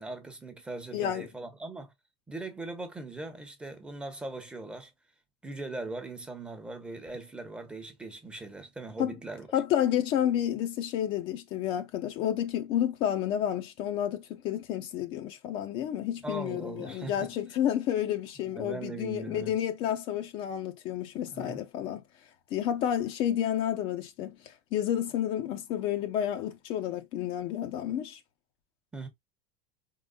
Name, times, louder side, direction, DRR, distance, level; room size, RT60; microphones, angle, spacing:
voice 1, 0.0-1.9 2.3-4.9 5.4-9.5 16.2-17.3 18.5-19.5 21.3-21.6 28.9-29.1, right 2 dB, 10° right, 0.9 m, -40 dB
voice 2, 0.9-1.3 9.0-9.1 9.5-22.0 22.5-28.2, left 10 dB, 40° left, 0.7 m, -30 dB
4.5 x 3.8 x 2.3 m
supercardioid pair, 155°, 13 cm